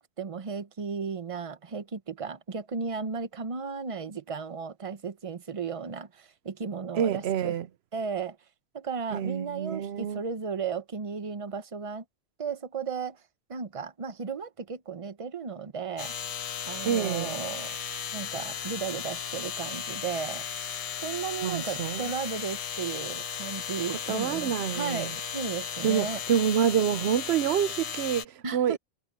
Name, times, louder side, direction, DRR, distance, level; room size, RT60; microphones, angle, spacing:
voice 1, 0.0-7.6 7.9-8.4 8.7-12.0 12.4-13.2 13.5-16.1 16.7-17.8 18.1-20.5 21.0-26.2 28.4-28.8, right 5 dB, 35° right, 0.9 m, -35 dB
voice 2, 6.9-7.7 9.1-10.2 16.8-17.3 21.4-22.1 24.1-25.2 25.8-28.8, right 8 dB, 85° right, 0.9 m, -27 dB
sound 1, 16.0-28.3, left 8 dB, 50° left, 0.5 m, -35 dB
omnidirectional pair, 1.0 m